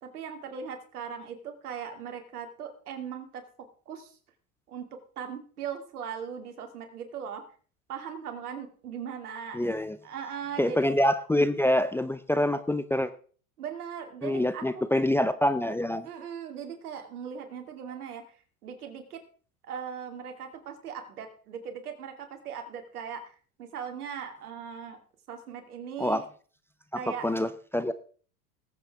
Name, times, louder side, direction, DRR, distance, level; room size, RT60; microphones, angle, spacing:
voice 1, 0.0-4.2 4.7-7.4 7.9-9.6 10.0-10.9 13.6-14.8 16.0-19.2 19.6-25.0 25.3-26.3 26.9-27.3, right 7 dB, 85° right, 2.5 m, -39 dB
voice 2, 9.5-10.0 10.6-13.1 14.2-16.1 26.0-26.2 27.2-27.9, left 1 dB, 5° left, 0.5 m, -26 dB
19.5 x 8.3 x 3.5 m
hypercardioid pair, 100°, 44 cm